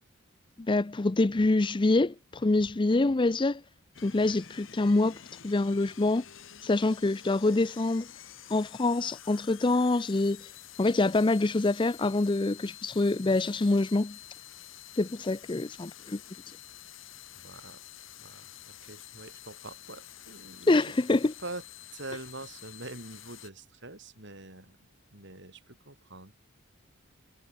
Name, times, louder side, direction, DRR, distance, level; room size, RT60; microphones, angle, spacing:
voice 1, 0.6-3.6 4.0-6.2 6.6-8.1 8.5-10.5 10.8-14.2 15.0-16.2 20.7-21.3, left 2 dB, 25° left, 0.5 m, -26 dB
sound 1, 3.9-23.5, left 11 dB, 65° left, 2.0 m, -49 dB
voice 2, 17.3-17.8 18.2-20.9 21.4-21.6 21.9-26.3, right 2 dB, 55° right, 6.1 m, -44 dB
head